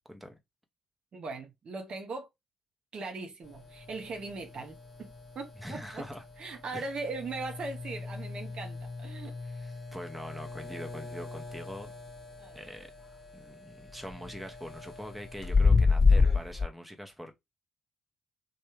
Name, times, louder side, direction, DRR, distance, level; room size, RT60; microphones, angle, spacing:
voice 1, 1.1-2.3 2.9-6.1 6.4-9.3 12.4-12.6, right 3 dB, 50° right, 0.7 m, -39 dB
sound 1, 3.4-16.6, left 4 dB, 15° left, 1.2 m, -31 dB
voice 2, 5.6-6.2 6.7-6.9 9.6-11.9 12.5-12.9 13.3-17.4, equal, 5° right, 0.8 m, -43 dB
3.1 x 2.3 x 3.1 m
hypercardioid pair, 45°, 2 cm